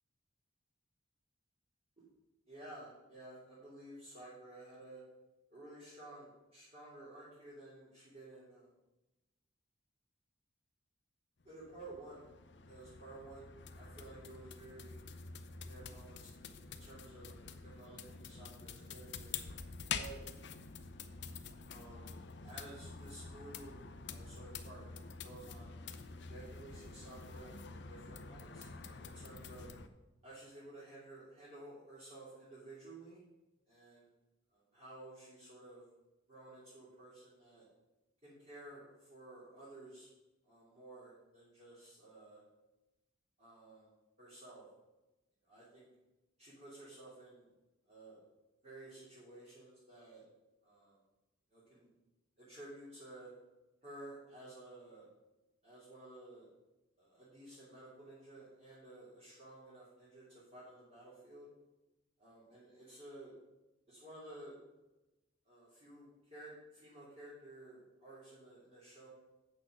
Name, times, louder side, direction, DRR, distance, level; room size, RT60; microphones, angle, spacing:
voice 1, 2.5-5.0 5.5-8.7 11.4-12.3 12.7-15.0 15.7-19.4 19.9-20.2 21.6-24.9 25.2-25.7 26.2-29.7 30.2-33.2 33.7-34.1 34.5-35.9 36.3-37.7 38.2-40.1 40.4-42.4 43.4-43.9 44.2-44.7 45.4-45.9 46.4-47.5 47.8-48.2 48.6-50.2 50.6-51.0 51.5-51.9 52.4-53.3 53.8-55.1 55.6-56.5 57.0-61.5 62.2-63.3 63.9-64.6 65.4-69.1, right 2 dB, 30° right, -10 dB, 2.8 m, -54 dB
sound 1, 11.4-29.9, left 5 dB, 60° left, 0.7 m, -47 dB
8.2 x 6.5 x 6.0 m, 1.0 s
head